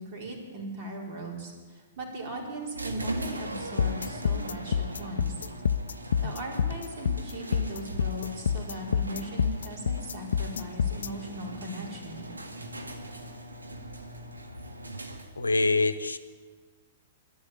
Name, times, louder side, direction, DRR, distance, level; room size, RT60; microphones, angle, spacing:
voice 1, 0.0-5.4 6.2-12.3, right 1 dB, 45° right, -1 dB, 4.5 m, -38 dB
mechanical garage door opener opening door squeaky quad, 2.7-15.5, right 1 dB, 85° right, 1.7 m, -40 dB
sound 1, 3.8-11.1, left 7 dB, 70° left, 0.4 m, -27 dB
voice 2, 15.4-16.2, left 3 dB, 85° left, 13 dB, 0.9 m, -24 dB
11.5 x 11.0 x 9.5 m, 1.4 s
figure-of-eight pair, 110°, 0 cm